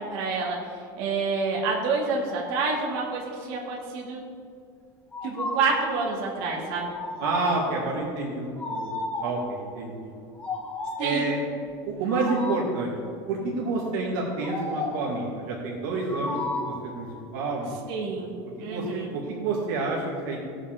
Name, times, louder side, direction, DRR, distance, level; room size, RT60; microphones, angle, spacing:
voice 1, 0.0-4.2 5.2-7.0 11.0-11.3 17.9-18.3 18.6-19.1, right 4 dB, 60° right, -3 dB, 2.5 m, -28 dB
sound 1, 5.1-5.9 6.9-7.8 8.6-9.5 10.4-11.2 12.1-12.8 14.4-15.1 16.1-16.9, left 2 dB, 15° left, 1.5 m, -33 dB
voice 2, 7.2-10.1 11.0-11.4 11.9-12.9 13.3-17.1 17.3-17.8 18.7-20.4, right 3 dB, 75° right, -3 dB, 2.1 m, -29 dB
17.5 x 8.1 x 3.8 m, 2.3 s
cardioid pair, 165°, 10 cm